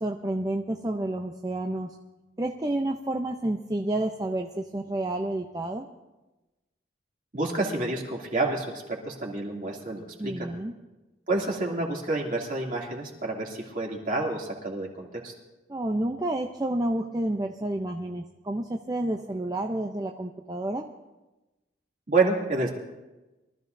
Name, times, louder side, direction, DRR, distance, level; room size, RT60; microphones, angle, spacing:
voice 1, 0.0-1.9 2.4-5.8 10.2-10.7 15.7-20.8, right 1 dB, 20° right, 2 dB, 0.6 m, -30 dB
voice 2, 7.3-10.5 11.3-15.3 22.1-22.7, right 3 dB, 50° right, -2 dB, 2.7 m, -29 dB
23.5 x 14.0 x 2.6 m, 1.1 s
head